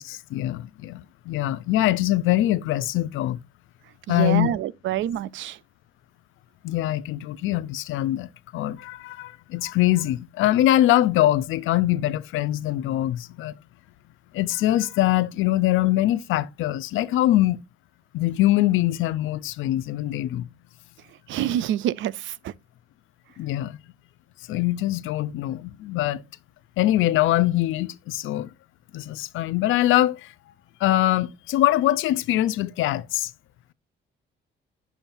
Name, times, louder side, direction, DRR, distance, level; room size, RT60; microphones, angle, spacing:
voice 1, 0.0-3.4 4.1-4.5 6.6-13.5 14.3-17.6 18.1-20.5 23.4-23.8 24.5-26.2 26.8-28.5 28.9-30.3 30.8-33.3, left 14 dB, 85° left, 0.6 m, -23 dB
voice 2, 4.1-5.6 21.3-22.5, right 11 dB, 75° right, 0.5 m, -27 dB
8.9 x 7.1 x 2.6 m
cardioid pair, 90°, 20 cm